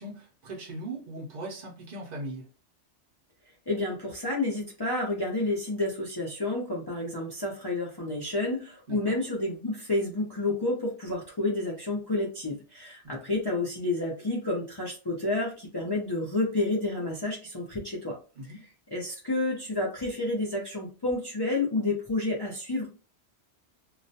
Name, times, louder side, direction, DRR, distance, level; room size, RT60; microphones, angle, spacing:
voice 1, 0.0-2.5 8.9-9.2 13.0-13.1 18.4-18.6, right 1 dB, 50° right, -2 dB, 0.6 m, -39 dB
voice 2, 3.7-18.1 18.9-22.9, left 2 dB, 35° left, -3 dB, 0.4 m, -30 dB
2.3 x 2.1 x 2.7 m, 0.34 s
omnidirectional pair, 1.2 m